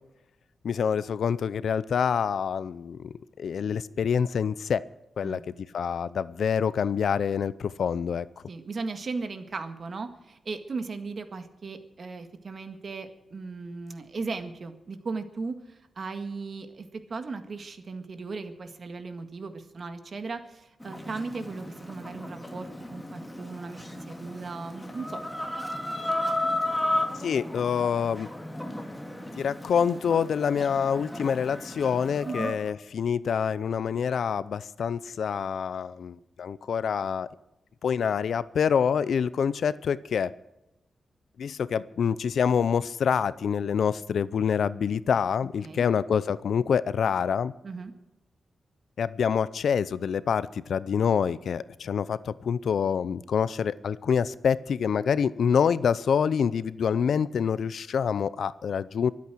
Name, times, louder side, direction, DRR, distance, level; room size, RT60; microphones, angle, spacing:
voice 1, 0.6-4.8 5.2-8.3 27.2-28.3 29.3-37.3 37.8-40.3 41.4-47.5 49.0-59.1, left 7 dB, 75° left, 17 dB, 0.6 m, -26 dB
voice 2, 8.5-15.6 16.0-25.2 32.2-32.5 45.6-45.8 47.6-47.9, right 4 dB, 45° right, 8 dB, 1.8 m, -37 dB
Chicken rooster, 20.8-32.5, left 1 dB, 10° left, 2.1 m, -34 dB
23.5 x 8.5 x 6.3 m, 0.94 s
wide cardioid pair, 140°, 0 cm